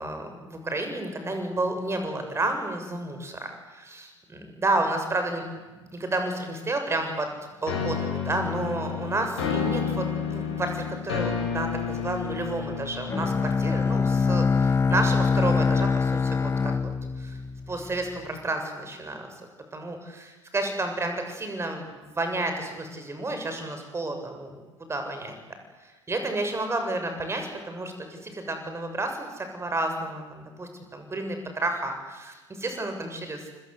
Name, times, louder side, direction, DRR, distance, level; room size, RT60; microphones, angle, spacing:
voice 1, 0.0-13.3 13.6-16.9 17.2-17.4 17.7-19.3 19.7-25.4 25.8-33.5, right 2 dB, 15° right, 5 dB, 7.0 m, -31 dB
sound 1, 7.7-14.5, left 7 dB, 65° left, 7.1 m, -31 dB
Bowed string instrument, 13.1-18.1, left 5 dB, 15° left, 1.1 m, -24 dB
30.0 x 21.0 x 8.3 m, 1.2 s
figure-of-eight pair, 75°, 16 cm